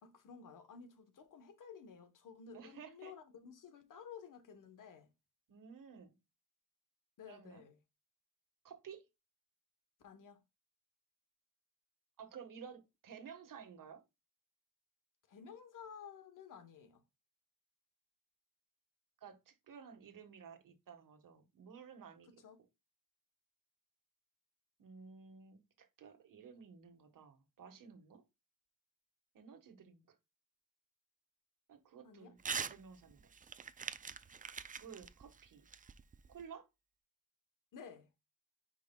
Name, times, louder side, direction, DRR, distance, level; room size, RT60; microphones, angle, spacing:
voice 1, 0.0-5.1 7.2-7.8 10.0-10.4 15.3-17.0 22.3-22.6 32.0-32.3 37.7-38.1, left 6 dB, 70° left, 1.1 m, -54 dB
voice 2, 2.5-3.1 5.5-6.1 7.2-7.6 8.6-9.0 12.2-14.0 19.2-22.3 24.8-28.2 29.3-30.1 31.7-32.4 32.6-33.3 34.8-35.6 36.3-36.7, right 6 dB, 75° right, 1.5 m, -54 dB
Crumpling crinkling / Tearing, 32.4-32.8 33.1-36.4, right 6 dB, 25° right, 0.4 m, -43 dB
9.5 x 5.0 x 2.3 m
wide cardioid pair, 135°, 32 cm